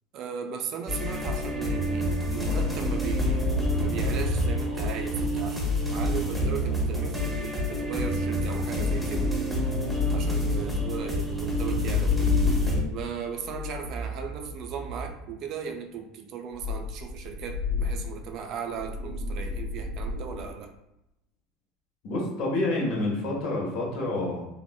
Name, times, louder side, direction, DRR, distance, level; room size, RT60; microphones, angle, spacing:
voice 1, 0.1-9.3 10.1-12.3 12.9-20.7, right 7 dB, 55° right, 4 dB, 0.3 m, -37 dB
sound 1, 0.9-12.8, left 1 dB, 5° right, 0.7 m, -28 dB
sound 2, 2.2-7.4 8.5-15.3 16.5-20.5, left 2 dB, 85° left, 0.5 m, -32 dB
voice 2, 22.0-24.5, left 2 dB, 60° left, -2 dB, 0.9 m, -28 dB
2.9 x 2.0 x 2.2 m, 0.86 s
hypercardioid pair, 75°, 0 cm